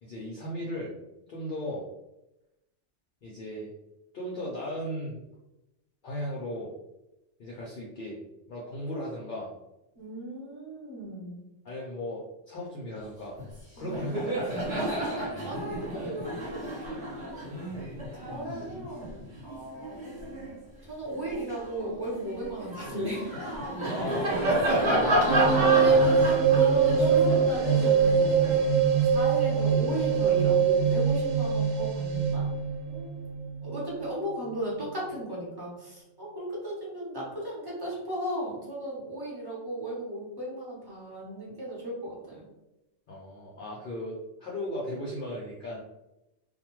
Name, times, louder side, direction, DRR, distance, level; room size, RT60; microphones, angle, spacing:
voice 1, 0.0-0.9 1.3-1.8 3.2-3.7 4.1-5.2 6.0-6.7 7.4-8.2 8.5-9.5 11.6-13.4 13.8-14.5 17.6-17.7 18.4-18.7 23.8-25.2 43.1-45.8, left 1 dB, 55° left, -4 dB, 0.6 m, -36 dB
voice 2, 10.0-11.5 13.8-14.4 14.9-17.1 18.1-20.5 20.9-23.6 24.6-24.8 25.7-28.6 29.1-32.5 32.9-33.1 33.6-42.4, right 1 dB, 20° right, -6 dB, 0.9 m, -36 dB
Laughter, 13.4-13.6 13.8-20.5 21.1-29.2, right 1 dB, 45° right, 1.1 m, -31 dB
sound 1, 25.3-33.8, right 6 dB, 75° right, 0.3 m, -23 dB
2.3 x 2.2 x 2.9 m, 0.92 s
omnidirectional pair, 1.2 m